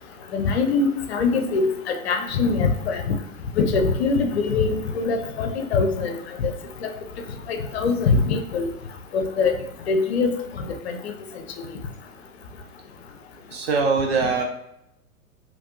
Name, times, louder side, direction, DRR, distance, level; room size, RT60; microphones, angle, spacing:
voice 1, 0.3-3.1 3.6-6.1 6.4-6.5 7.5-8.7 9.1-9.5 9.9-10.3 10.7-11.0, left 4 dB, 45° left, 5 dB, 0.5 m, -22 dB
voice 2, 13.5-14.4, right 4 dB, 45° right, 2 dB, 0.5 m, -22 dB
3.3 x 3.0 x 2.6 m, 0.81 s
figure-of-eight pair, 100°, 45 cm